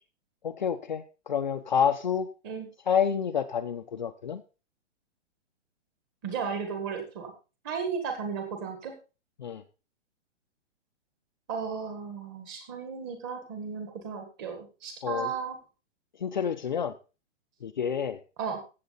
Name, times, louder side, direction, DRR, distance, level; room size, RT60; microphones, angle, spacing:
voice 1, 0.4-2.3 2.9-4.4 9.4-9.6 15.0-15.3 16.2-16.9 17.6-18.2, left 7 dB, 40° left, 6 dB, 0.7 m, -28 dB
voice 2, 6.2-7.3 7.6-8.9 11.5-15.6 18.4-18.6, right 6 dB, 15° right, 5 dB, 1.6 m, -34 dB
15.5 x 7.5 x 4.0 m, 0.33 s
hypercardioid pair, 180°, 35 cm